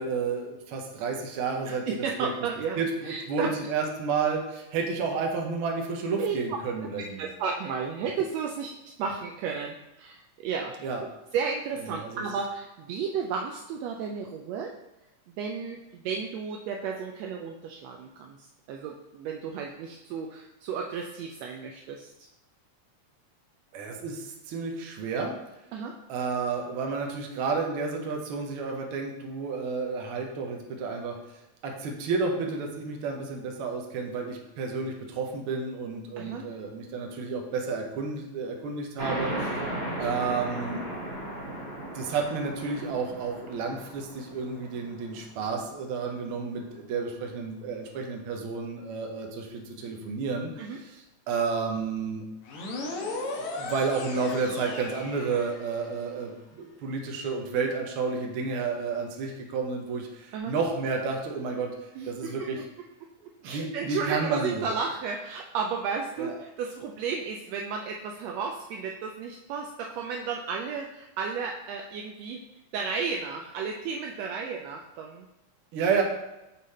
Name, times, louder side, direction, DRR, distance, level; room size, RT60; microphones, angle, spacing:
voice 1, 0.0-1.8 2.2-2.3 2.8-7.3 10.8-11.0 11.9-12.2 23.7-25.3 26.1-31.2 31.6-39.3 40.0-40.8 41.9-50.7 51.3-52.2 53.6-61.7 62.1-62.6 63.4-64.7 66.2-66.3 75.7-76.0, right 4 dB, 70° right, 2 dB, 1.3 m, -31 dB
voice 2, 1.6-3.5 6.2-6.4 7.2-8.7 9.0-10.8 11.3-14.7 15.3-22.3 25.7-26.0 36.2-36.5 39.3-39.5 50.6-50.8 60.3-60.5 61.9-62.5 63.4-72.4 72.7-75.3 75.8-76.0, right 6 dB, 85° right, 1 dB, 1.5 m, -33 dB
sound 1, 39.0-46.1, right 1 dB, 30° right, 1.3 m, -36 dB
sound 2, 52.5-56.0, left 2 dB, 75° left, 2.2 m, -37 dB
6.6 x 3.9 x 4.1 m, 0.96 s
omnidirectional pair, 3.5 m